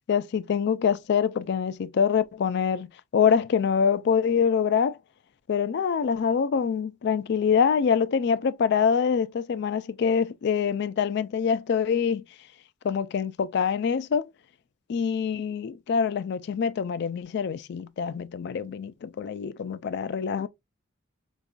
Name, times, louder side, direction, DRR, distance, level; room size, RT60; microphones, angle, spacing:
voice 1, 0.1-2.9 3.1-5.0 5.5-12.2 12.8-14.3 14.9-20.5, left 6 dB, 60° left, 0.3 m, -25 dB
5.1 x 2.4 x 2.2 m
head